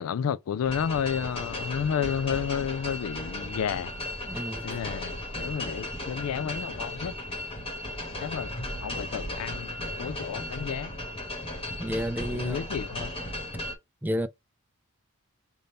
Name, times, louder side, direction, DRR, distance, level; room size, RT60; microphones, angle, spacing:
voice 1, 0.0-3.9 4.6-7.4 8.2-8.6 8.8-10.9 12.3-13.1, left 7 dB, 70° left, 0.3 m, -31 dB
sound 1, 0.6-13.8, left 1 dB, 25° left, 1.2 m, -36 dB
voice 2, 4.3-4.8 11.8-12.6 14.0-14.3, equal, 10° right, 0.4 m, -31 dB
5.3 x 2.6 x 3.4 m
head